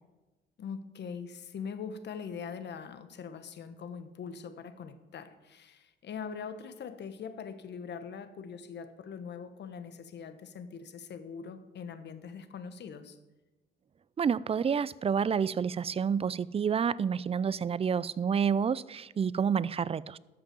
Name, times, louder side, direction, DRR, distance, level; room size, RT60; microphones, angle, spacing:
voice 1, 0.6-13.2, left 6 dB, 60° left, 1.2 m, -42 dB
voice 2, 14.2-20.2, right 7 dB, 30° right, 0.4 m, -29 dB
13.0 x 6.1 x 7.8 m
cardioid pair, 90°, 20 cm